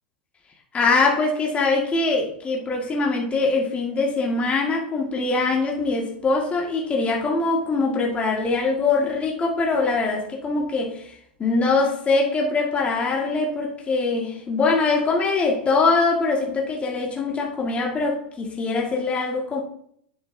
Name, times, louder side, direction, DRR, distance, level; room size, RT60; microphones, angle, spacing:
voice 1, 0.7-11.1 11.4-19.6, left 3 dB, 25° left, -1 dB, 1.8 m, -23 dB
9.7 x 8.3 x 2.7 m, 0.66 s
hypercardioid pair, 95°, 5 cm